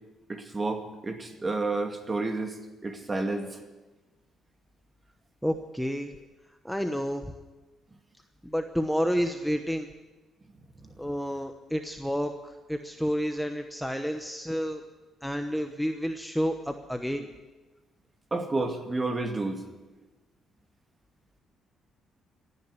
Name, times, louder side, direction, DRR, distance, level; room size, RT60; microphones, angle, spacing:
voice 1, 0.3-2.6 2.8-3.6 10.8-10.9 18.3-19.6, right 3 dB, 25° right, 5 dB, 2.2 m, -30 dB
voice 2, 5.4-6.1 6.6-7.2 8.4-9.9 11.0-14.8 15.2-17.3, equal, ahead, 6 dB, 1.0 m, -30 dB
15.0 x 9.7 x 9.7 m, 1.2 s
cardioid pair, 90°, 0 cm